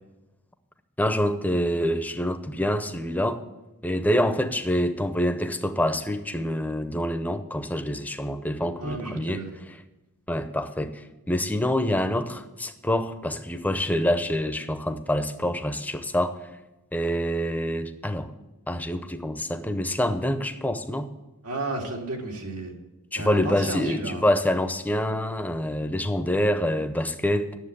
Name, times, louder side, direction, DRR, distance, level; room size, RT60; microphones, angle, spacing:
voice 1, 1.0-3.4 3.8-9.8 10.3-16.4 16.9-18.3 18.7-21.1 23.1-27.6, equal, 5° left, 9 dB, 0.6 m, -26 dB
voice 2, 8.8-9.6 21.4-22.7 23.1-24.2, right 2 dB, 85° right, 1 dB, 2.2 m, -33 dB
9.8 x 7.3 x 8.4 m, 1.0 s
head